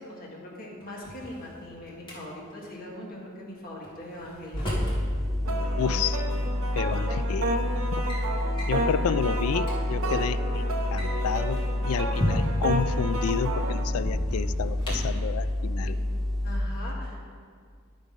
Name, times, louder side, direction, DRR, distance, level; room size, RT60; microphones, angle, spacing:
voice 1, 0.0-4.7 11.9-12.5 15.8-16.0 16.4-17.2, left 1 dB, 45° left, -4 dB, 1.9 m, -41 dB
Drawer open or close, 0.8-2.2 3.8-5.0 6.3-6.4 7.2-7.5 7.8-8.2 8.6-8.8 9.3-9.4 9.6-9.8 10.8-12.7 13.9-15.2, equal, 25° left, 2.0 m, -34 dB
sound 1, 4.5-16.6, left 1 dB, ahead, 0.3 m, -29 dB
sound 2, 5.4-13.8, right 2 dB, 75° right, 0.9 m, -32 dB
voice 2, 5.8-6.2 6.8-8.0 8.7-16.0, left 7 dB, 85° left, 14 dB, 0.3 m, -31 dB
10.5 x 5.3 x 5.2 m, 2.1 s
head